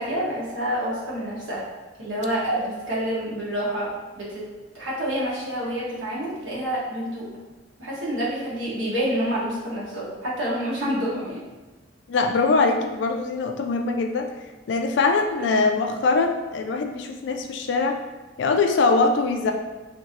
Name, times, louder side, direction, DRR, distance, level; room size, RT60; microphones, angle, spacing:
voice 1, 0.0-1.6 2.0-4.4 4.7-7.3 7.8-11.4 15.4-15.7, equal, 80° right, -7 dB, 1.1 m, -28 dB
voice 2, 12.1-14.3 14.7-18.0 18.4-19.5, left 3 dB, 60° left, 5 dB, 0.3 m, -22 dB
2.9 x 2.6 x 2.7 m, 1.2 s
head